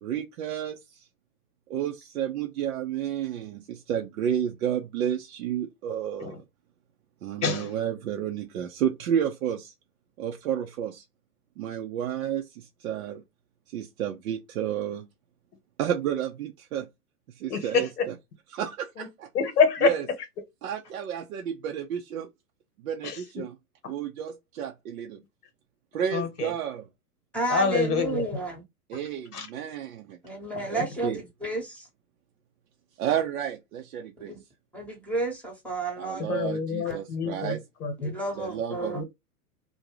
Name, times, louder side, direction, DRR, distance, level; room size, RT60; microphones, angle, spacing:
voice 1, 0.0-1.1 1.7-6.4 7.2-9.7 10.2-11.0 11.6-13.2 13.7-15.1 15.8-16.9 17.3-18.1 18.5-19.3 19.8-20.1 20.6-22.3 22.8-23.6 23.9-25.2 25.9-26.9 28.9-30.2 30.7-31.2 33.0-34.3 36.0-37.6 38.4-39.0, right 9 dB, 65° right, 0.6 m, -31 dB
voice 2, 17.5-18.0 19.0-19.1 19.3-20.0 23.0-23.2 26.1-26.5 27.5-28.2 29.3-29.5 36.3-38.1 38.9-39.0, left 5 dB, 75° left, 1.0 m, -26 dB
voice 3, 27.3-28.6 30.2-31.9 34.2-34.4 34.7-36.3 36.8-37.0 38.0-39.0, right 2 dB, 5° left, 0.9 m, -31 dB
2.6 x 2.2 x 2.9 m
hypercardioid pair, 110°, 47 cm